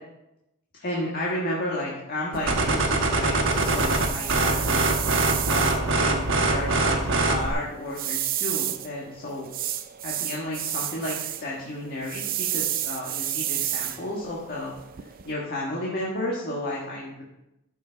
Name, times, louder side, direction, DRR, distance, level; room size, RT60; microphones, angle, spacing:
voice 1, 0.8-4.9 5.5-9.5 10.0-14.7 15.0-17.2, left 1 dB, 45° left, -4 dB, 1.5 m, -32 dB
sound 1, 2.3-15.3, right 12 dB, 40° right, 0.5 m, -32 dB
sound 2, 2.5-7.5, right 2 dB, 55° right, 1.2 m, -23 dB
13.0 x 5.8 x 3.9 m, 0.90 s
head